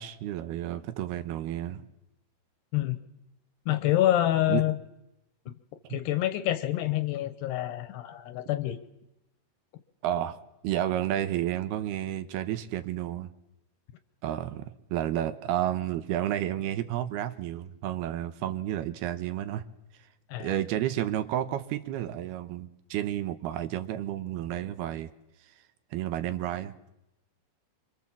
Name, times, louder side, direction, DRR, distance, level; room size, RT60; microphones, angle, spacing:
voice 1, 0.0-1.9 4.5-4.6 5.9-6.0 10.0-10.4 10.6-13.3 14.2-19.6 20.4-25.1 25.9-26.8, right 12 dB, 70° right, 10 dB, 2.8 m, -31 dB
voice 2, 3.7-4.7 5.9-8.8 20.3-20.5, left 13 dB, 70° left, 11 dB, 2.9 m, -27 dB
27.0 x 25.5 x 7.5 m, 0.87 s
omnidirectional pair, 5.3 m